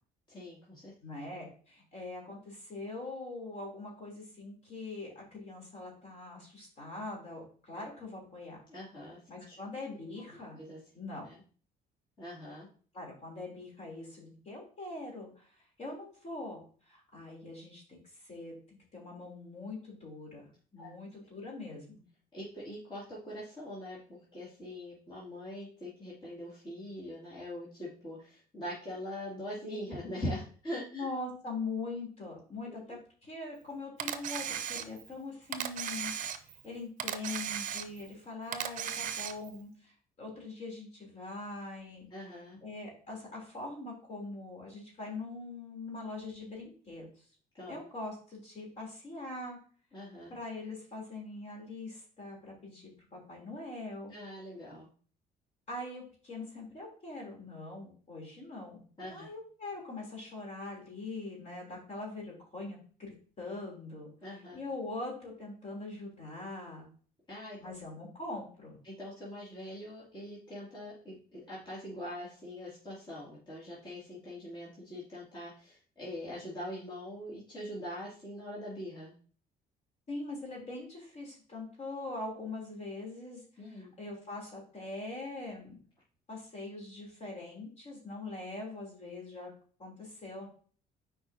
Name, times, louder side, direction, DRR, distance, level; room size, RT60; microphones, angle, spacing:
voice 1, 0.3-0.9 8.7-9.2 9.5-9.6 10.6-10.8 11.3-11.4 12.2-12.7 20.8-20.9 22.3-31.1 32.7-33.0 42.1-42.6 47.5-47.7 49.9-50.3 54.1-54.9 59.0-59.3 64.2-64.6 67.3-67.7 68.8-79.1 83.6-83.9, left 1 dB, 30° left, -8 dB, 2.6 m, -42 dB
voice 2, 1.0-8.6 9.3-10.6 10.9-11.2 12.9-15.5 15.8-16.6 16.9-17.8 18.1-22.0 30.9-42.1 42.6-47.1 47.7-49.6 50.3-54.1 55.7-64.1 64.5-66.9 67.6-68.8 80.1-83.4 83.7-85.8 86.3-89.5 89.8-90.5, left 2 dB, 45° left, -1 dB, 3.2 m, -42 dB
Camera, 34.0-35.1 35.5-36.7 37.0-38.1 38.5-39.6, right 9 dB, 50° right, 0.6 m, -36 dB
8.0 x 4.8 x 2.7 m, 0.43 s
cardioid pair, 110°, 17 cm